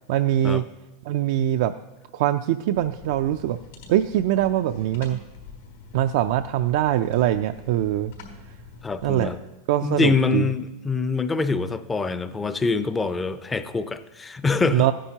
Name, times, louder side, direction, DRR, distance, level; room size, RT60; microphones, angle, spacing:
voice 1, 0.1-0.6 1.1-1.7 2.1-3.6 3.9-5.2 5.9-8.1 9.0-9.3 9.7-10.5 14.7-14.9, right 12 dB, 65° right, 7 dB, 0.4 m, -22 dB
sound 1, 2.7-9.4, left 4 dB, 75° left, 4.0 m, -45 dB
voice 2, 8.8-9.4 9.8-14.9, left 4 dB, 15° left, 12 dB, 0.5 m, -25 dB
15.0 x 10.0 x 2.8 m, 1.1 s
supercardioid pair, 140°, 0 cm